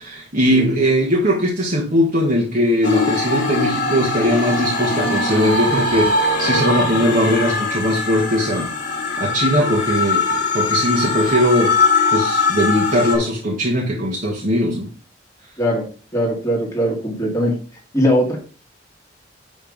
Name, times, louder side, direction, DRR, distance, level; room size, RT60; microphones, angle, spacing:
voice 1, 0.0-8.7 9.2-11.8 12.1-14.9, equal, 45° right, -3 dB, 1.6 m, -19 dB
sound 1, 2.8-13.2, left 3 dB, 40° left, 4.2 m, -21 dB
voice 2, 16.1-17.5 17.9-18.4, equal, 15° left, -2 dB, 2.2 m, -20 dB
10.5 x 3.6 x 5.2 m, 0.40 s
head